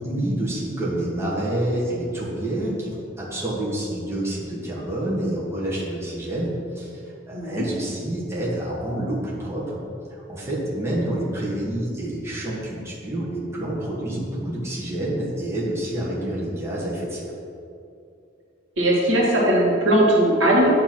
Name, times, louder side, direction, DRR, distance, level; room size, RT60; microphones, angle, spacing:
voice 1, 0.0-6.9 7.3-9.8 10.1-17.3, right 1 dB, 15° right, -6 dB, 1.2 m, -28 dB
voice 2, 7.3-7.6 18.8-20.7, right 1 dB, 80° right, -3 dB, 1.6 m, -19 dB
8.7 x 3.0 x 5.8 m, 2.5 s
head